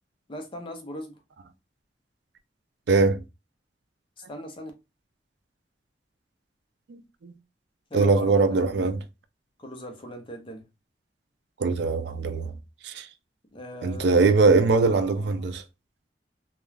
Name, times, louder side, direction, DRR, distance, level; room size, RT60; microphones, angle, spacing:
voice 1, 0.3-1.2 4.2-4.7 7.9-8.9 9.6-10.6 13.5-14.6 14.8-15.4, left 1 dB, 30° left, 0.6 m, -39 dB
voice 2, 2.9-3.2 6.9-7.3 7.9-9.0 11.6-12.5 12.8-13.1 13.8-15.6, right 4 dB, 70° right, 0.4 m, -22 dB
2.3 x 2.2 x 3.1 m
head